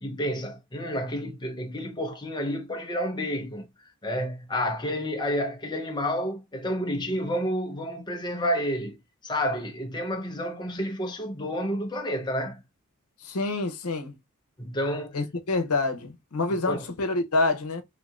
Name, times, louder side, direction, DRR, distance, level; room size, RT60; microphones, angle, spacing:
voice 1, 0.0-12.6 14.6-15.2 16.7-16.8, equal, 20° left, 0.7 m, -30 dB
voice 2, 13.2-14.2 15.1-17.8, left 3 dB, 80° left, 0.8 m, -27 dB
3.4 x 2.7 x 2.4 m
head